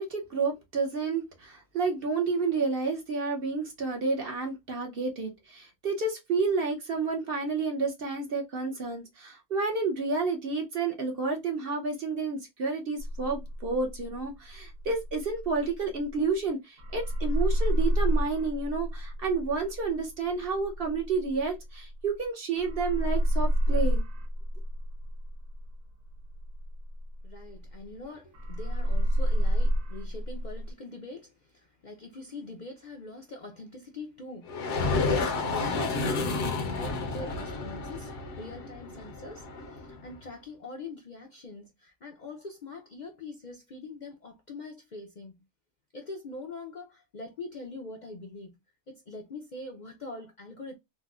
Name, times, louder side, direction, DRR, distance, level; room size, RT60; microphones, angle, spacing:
voice 1, 0.0-24.0, right 4 dB, 50° right, 1.0 m, -30 dB
sound 1, 13.0-16.5 16.8-22.3 22.6-28.0 28.3-30.7, equal, 85° right, 1.3 m, -29 dB
voice 2, 27.2-45.4 45.9-48.5 48.9-50.8, left 3 dB, 50° left, 0.6 m, -43 dB
sound 2, 34.5-40.1, left 3 dB, 65° left, 1.1 m, -31 dB
4.1 x 2.2 x 2.3 m
omnidirectional pair, 1.3 m